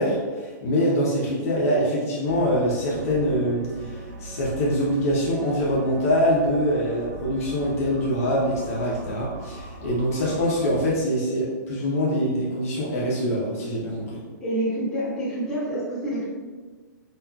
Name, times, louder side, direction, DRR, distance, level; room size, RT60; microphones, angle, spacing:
voice 1, 0.0-14.2, equal, 45° left, -5 dB, 0.7 m, -24 dB
sound 1, 2.3-11.0, right 3 dB, 90° right, 0.5 m, -39 dB
voice 2, 14.4-16.3, right 1 dB, 5° left, -13 dB, 1.2 m, -27 dB
5.3 x 2.3 x 2.3 m, 1.4 s
hypercardioid pair, 165°, 11 cm